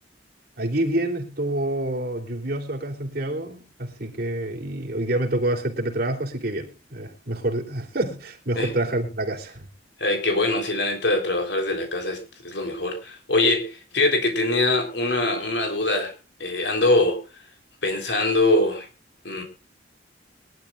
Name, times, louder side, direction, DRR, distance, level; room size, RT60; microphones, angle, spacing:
voice 1, 0.6-9.6, right 1 dB, 55° right, 3.3 m, -27 dB
voice 2, 10.0-16.1 16.4-17.2 17.8-18.9 19.2-19.4, left 2 dB, 75° left, 3.8 m, -23 dB
23.0 x 12.0 x 2.5 m
head